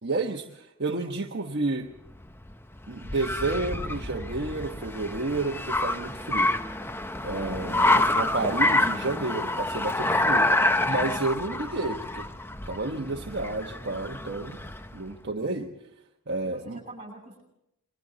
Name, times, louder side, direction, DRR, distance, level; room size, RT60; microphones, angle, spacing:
voice 1, 0.0-1.9 2.9-6.5 7.2-12.3 12.7-14.6 14.9-15.7 16.3-16.8, right 2 dB, 50° right, 1 dB, 1.3 m, -31 dB
Car, 2.1-15.0, left 2 dB, 10° left, 0.7 m, -27 dB
voice 2, 7.4-7.9 15.4-15.6 16.4-17.4, right 1 dB, 30° right, 3 dB, 7.7 m, -44 dB
28.0 x 23.0 x 4.0 m, 0.85 s
head